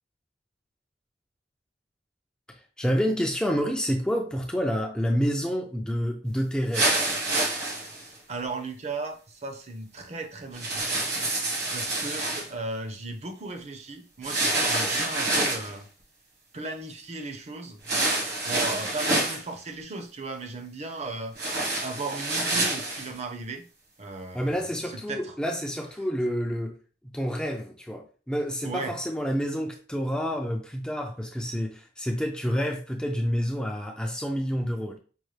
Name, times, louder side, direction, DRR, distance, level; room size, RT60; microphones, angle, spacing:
voice 1, 2.8-7.0 24.3-26.8 27.0-35.0, equal, 5° left, 0.4 m, -28 dB
sound 1, 6.7-8.1 10.5-12.5 14.2-15.7 17.8-19.4 21.3-23.1, right 2 dB, 65° right, 1.3 m, -27 dB
voice 2, 8.3-11.1 11.7-15.9 16.5-17.8 18.5-21.3 21.8-23.6 24.0-24.6 25.1-25.3 28.6-28.9, right 3 dB, 40° right, 0.6 m, -36 dB
5.3 x 2.1 x 3.2 m
head